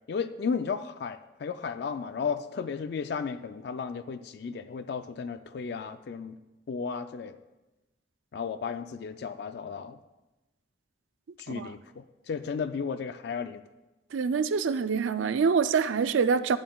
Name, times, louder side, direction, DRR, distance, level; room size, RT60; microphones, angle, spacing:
voice 1, 0.1-6.4 6.7-7.4 8.3-10.0 11.4-13.6, left 5 dB, 55° left, 11 dB, 0.3 m, -34 dB
voice 2, 14.1-16.6, right 5 dB, 85° right, 13 dB, 0.4 m, -25 dB
12.5 x 9.4 x 2.3 m, 1.1 s
head